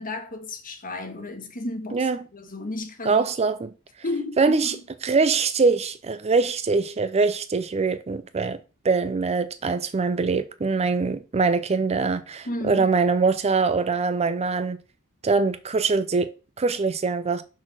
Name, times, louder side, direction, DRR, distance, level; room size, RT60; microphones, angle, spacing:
voice 1, 0.0-3.3 4.0-4.8 12.4-12.9, left 2 dB, 40° left, 1.5 m, -33 dB
voice 2, 3.1-3.7 4.4-4.8 5.0-8.6 8.8-14.8 15.2-16.3 16.6-17.4, right 4 dB, 30° right, 0.5 m, -23 dB
6.1 x 4.3 x 6.2 m
head